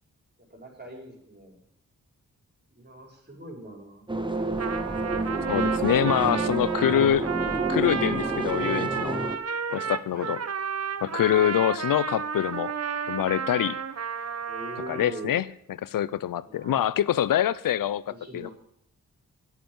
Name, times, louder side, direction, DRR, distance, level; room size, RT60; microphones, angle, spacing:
voice 1, 0.5-1.6 2.7-4.0 8.5-8.9 9.7-10.4 11.4-11.5 14.5-15.4 16.4-16.9 18.1-18.5, right 1 dB, 30° right, 5.5 m, -42 dB
sound 1, 4.1-9.4, right 3 dB, 15° right, 1.3 m, -29 dB
Trumpet, 4.4-15.3, right 6 dB, 50° right, 1.0 m, -32 dB
voice 2, 5.5-7.3 7.7-9.2 9.7-10.4 11.0-12.7 13.1-13.8 14.9-15.5 15.8-18.5, left 11 dB, 80° left, 0.6 m, -25 dB
10.0 x 8.3 x 9.0 m
cardioid pair, 55°, 33 cm